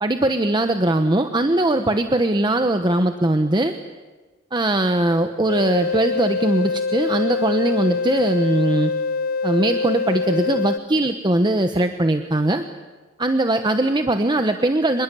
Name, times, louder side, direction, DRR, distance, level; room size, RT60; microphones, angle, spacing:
voice 1, 0.0-3.7 4.5-8.9 9.4-12.6 13.2-15.0, right 1 dB, 20° right, 7 dB, 1.0 m, -20 dB
sound 1, 5.5-10.8, left 4 dB, 45° left, 0.8 m, -24 dB
26.5 x 21.5 x 8.4 m, 1.3 s
head